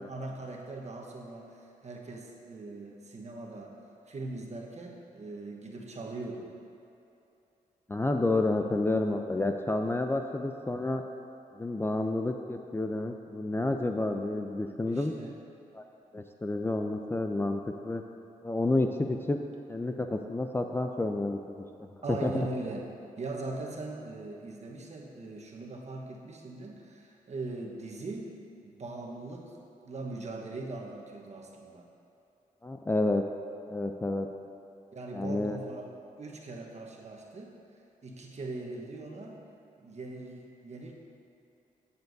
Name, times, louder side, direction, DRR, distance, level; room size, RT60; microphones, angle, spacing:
voice 1, 0.0-6.6 14.9-15.4 22.0-22.9 23.2-28.4 28.6-31.9 34.9-37.6 38.0-39.4 39.8-40.9, right 2 dB, 50° right, 0 dB, 1.2 m, -40 dB
voice 2, 7.9-11.0 11.6-15.1 15.7-15.8 16.1-18.0 18.4-19.4 19.7-21.6 22.1-22.3 32.6-33.2 33.7-34.3 35.1-35.6, left 2 dB, 15° left, 4 dB, 0.5 m, -30 dB
14.0 x 7.0 x 2.7 m, 2.9 s
cardioid pair, 55°, 15 cm